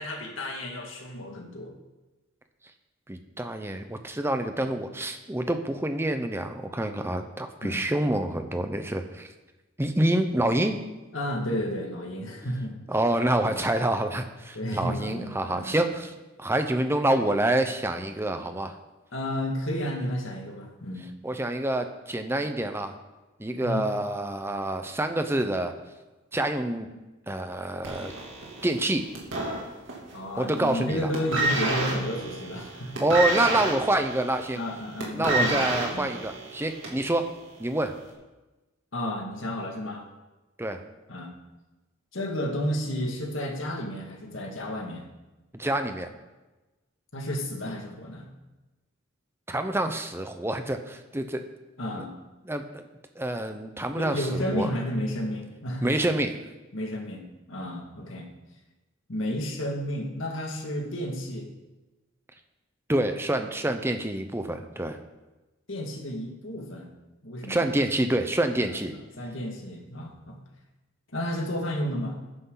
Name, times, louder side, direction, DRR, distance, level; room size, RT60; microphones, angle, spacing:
voice 1, 0.0-1.7 7.6-7.8 11.1-12.8 13.5-13.7 14.5-15.9 19.1-21.1 23.6-23.9 30.1-33.0 34.6-35.6 35.9-36.1 38.9-40.1 41.1-41.3 42.1-45.1 47.1-48.3 51.8-52.1 54.0-55.9 56.7-58.3 59.1-61.5 65.7-66.9 67.2-67.6 69.2-70.4 71.1-72.2, equal, 70° left, 1 dB, 2.0 m, -32 dB
voice 2, 3.1-9.3 9.8-10.8 12.9-16.1 16.4-18.7 21.2-22.9 23.4-25.7 26.3-26.9 27.3-28.1 28.6-29.1 30.4-31.1 33.0-34.6 35.1-37.2 37.6-38.0 40.6-40.8 45.5-46.1 49.5-51.4 51.9-52.0 52.4-52.8 53.2-54.7 55.8-56.4 62.9-65.0 67.5-68.9, right 1 dB, 10° right, 7 dB, 0.8 m, -27 dB
sound 1, 27.8-30.2 30.5-30.8 31.1-37.1 37.9-38.0, right 2 dB, 65° right, 2.7 m, -29 dB
14.0 x 9.9 x 4.0 m, 1.1 s
head